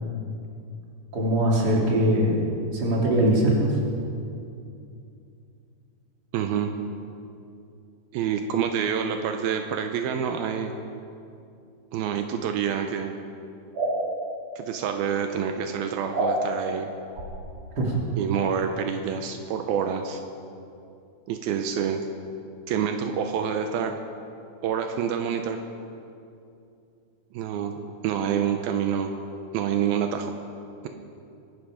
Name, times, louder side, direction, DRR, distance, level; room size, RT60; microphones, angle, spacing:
voice 1, 1.1-3.7 17.8-17.9, right 1 dB, 30° right, -3 dB, 3.0 m, -22 dB
voice 2, 6.3-6.7 8.1-10.7 11.9-13.1 14.6-16.9 18.2-20.2 21.3-22.0 22.7-23.9 24.6-25.6 27.3-27.7 28.0-29.1 29.5-30.3, right 8 dB, 80° right, 5 dB, 2.5 m, -27 dB
sound 1, 13.7-14.0 16.1-16.4 17.1-17.3, right 3 dB, 65° right, 5.1 m, -25 dB
24.5 x 11.5 x 5.1 m, 2.6 s
omnidirectional pair, 4.5 m